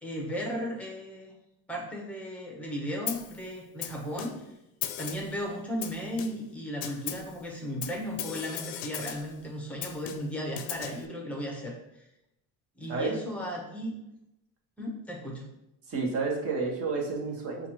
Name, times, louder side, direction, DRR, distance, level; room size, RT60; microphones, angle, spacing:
voice 1, 0.0-1.3 1.7-4.3 5.0-11.8 12.8-14.0 14.8-15.5, equal, 5° left, 0 dB, 0.8 m, -35 dB
Snare drum, 3.1-3.4 3.8-4.5 4.8-5.4 5.8-6.5 6.8-7.3 7.8-9.3 9.8-11.0, left 10 dB, 85° left, 0.5 m, -38 dB
voice 2, 15.9-17.7, right 4 dB, 40° right, -1 dB, 1.1 m, -30 dB
7.0 x 2.5 x 3.0 m, 0.86 s
cardioid pair, 150°, 34 cm